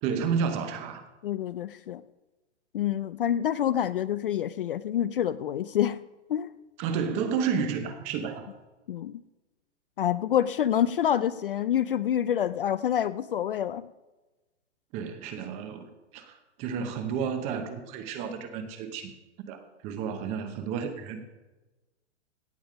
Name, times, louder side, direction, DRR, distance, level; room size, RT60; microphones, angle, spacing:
voice 1, 0.0-1.0 6.8-8.5 14.9-19.1 19.5-21.2, right 6 dB, 20° right, 9 dB, 0.9 m, -31 dB
voice 2, 1.2-2.0 2.7-6.0 6.3-6.5 8.9-9.2 10.0-13.9, left 10 dB, 50° left, 16 dB, 0.4 m, -27 dB
17.0 x 7.1 x 5.1 m, 1.1 s
hypercardioid pair, 160°, 36 cm